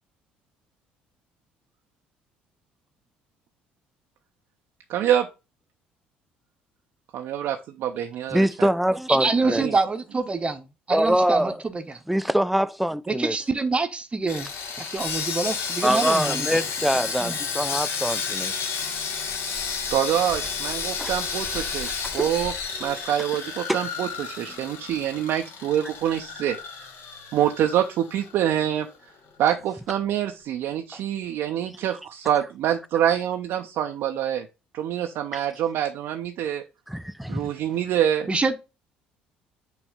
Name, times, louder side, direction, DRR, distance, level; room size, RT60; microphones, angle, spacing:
voice 1, 4.9-5.3 7.1-8.7 9.4-9.8 19.9-22.5 22.8-26.9 27.3-28.9 29.4-34.5 34.7-36.6 37.3-38.3, right 10 dB, 60° right, 0.6 m, -26 dB
voice 2, 8.3-9.6 10.9-11.6 12.1-13.4 15.8-18.5 21.0-21.1 22.0-22.3 23.7-23.8 35.3-35.4 36.9-37.5, equal, ahead, 0.4 m, -24 dB
voice 3, 9.1-12.0 13.1-14.5 14.8-16.5 17.2-17.4 38.3-38.6, right 3 dB, 25° right, 0.8 m, -26 dB
Sawing, 14.3-28.5 28.8-29.0 29.4-29.5, left 5 dB, 60° left, 1.4 m, -31 dB
6.2 x 3.1 x 5.1 m
hypercardioid pair, 55°, 4 cm